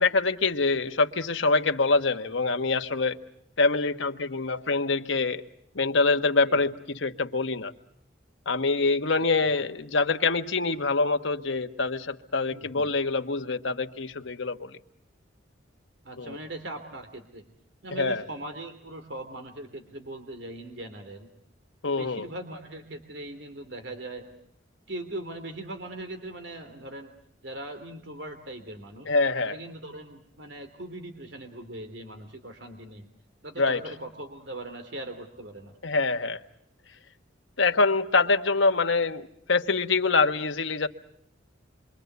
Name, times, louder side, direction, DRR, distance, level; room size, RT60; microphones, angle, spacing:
voice 1, 0.0-3.2 3.6-5.4 5.7-7.7 8.5-14.8 16.2-16.4 17.9-18.2 21.8-22.3 29.1-29.6 33.6-33.8 35.8-36.4 37.6-40.9, left 3 dB, 90° left, 7 dB, 1.3 m, -25 dB
voice 2, 9.2-9.6 12.5-12.9 16.0-17.4 17.8-21.3 21.8-24.3 24.9-27.1 27.4-29.1 29.5-33.1 33.4-35.8, right 1 dB, 70° right, 7 dB, 3.1 m, -40 dB
27.5 x 25.0 x 8.1 m, 0.68 s
head